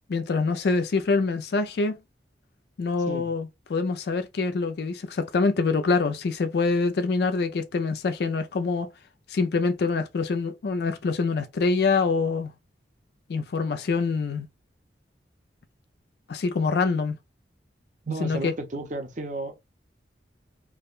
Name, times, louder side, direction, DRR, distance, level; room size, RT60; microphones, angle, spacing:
voice 1, 0.1-1.9 2.8-8.9 9.3-12.5 13.3-14.5 16.3-17.2 18.2-18.5, left 4 dB, 60° left, 0.4 m, -25 dB
voice 2, 18.0-19.7, right 2 dB, 45° right, 0.6 m, -33 dB
3.4 x 2.2 x 2.4 m
head